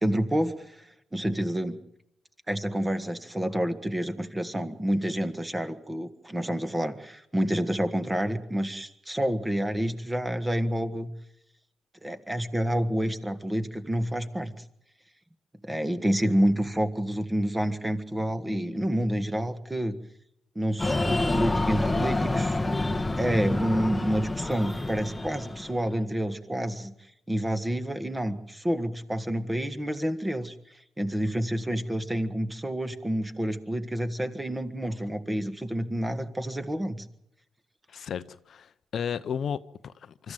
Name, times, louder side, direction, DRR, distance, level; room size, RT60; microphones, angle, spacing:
voice 1, 0.0-1.8 2.5-11.1 12.0-14.5 15.6-19.9 20.5-22.6 23.2-26.9 27.3-30.5 31.0-37.0, equal, 15° right, 10 dB, 1.7 m, -28 dB
Breathing, 20.8-26.0, left 2 dB, 10° left, 1.2 m, -28 dB
voice 2, 37.9-40.3, left 7 dB, 55° left, 13 dB, 0.7 m, -34 dB
25.0 x 13.5 x 9.2 m, 0.80 s
cardioid pair, 90°, 0 cm